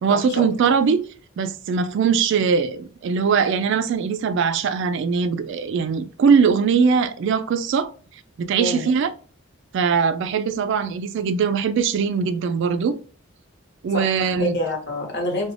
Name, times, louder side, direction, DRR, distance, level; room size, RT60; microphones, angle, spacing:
voice 1, 0.0-1.0 1.4-7.9 8.4-9.1 9.7-13.0 13.8-14.6, right 6 dB, 60° right, 0.3 m, -21 dB
voice 2, 13.9-15.5, left 1 dB, 55° left, 1.0 m, -27 dB
2.4 x 2.2 x 3.2 m
head